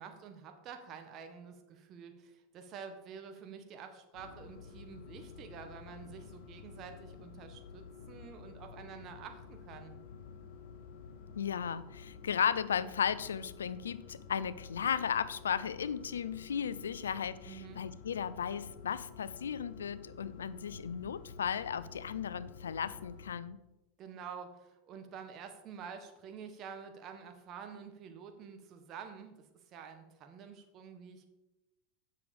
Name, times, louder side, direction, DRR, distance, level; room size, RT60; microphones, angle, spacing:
voice 1, 0.0-9.9 17.4-17.8 24.0-31.3, right 6 dB, 45° right, 6 dB, 1.5 m, -48 dB
sound 1, 4.1-23.3, left 5 dB, 65° left, 2.1 m, -51 dB
voice 2, 11.3-23.6, left 8 dB, 90° left, 16 dB, 0.5 m, -35 dB
7.7 x 6.3 x 7.0 m, 0.98 s
hypercardioid pair, 100°, 0 cm